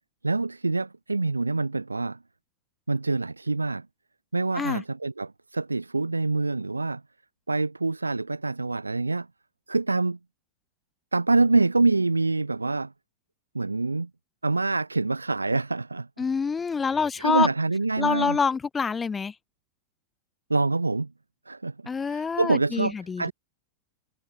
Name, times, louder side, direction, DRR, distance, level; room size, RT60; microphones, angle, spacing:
voice 1, 0.2-2.2 2.9-3.8 4.3-7.0 7.5-9.3 9.7-10.2 11.1-12.9 13.5-14.1 14.4-16.1 17.2-18.4 20.5-21.1 21.4-21.7 22.1-23.3, right 3 dB, 80° right, 5.2 m, -25 dB
voice 2, 16.2-17.5 18.0-19.3 21.9-23.3, left 5 dB, 15° left, 4.9 m, -26 dB
figure-of-eight pair, 90°, 0 cm